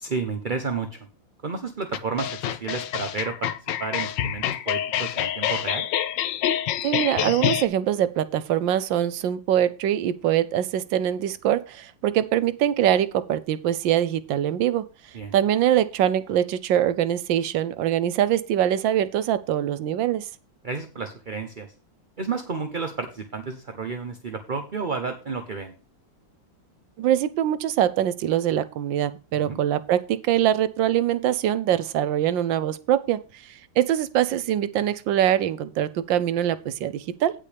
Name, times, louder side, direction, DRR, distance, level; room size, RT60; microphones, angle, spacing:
voice 1, 0.0-1.0 1.4-3.5 3.8-5.8 15.1-15.3 20.6-21.7 22.2-25.7 29.4-29.6, right 4 dB, 35° right, 7 dB, 0.8 m, -31 dB
sound 1, 1.9-7.7, left 10 dB, 75° left, 1.4 m, -27 dB
voice 2, 6.8-14.8 15.3-20.3 27.0-37.3, right 11 dB, 80° right, 15 dB, 1.4 m, -23 dB
16.5 x 5.6 x 3.4 m, 0.33 s
omnidirectional pair, 2.1 m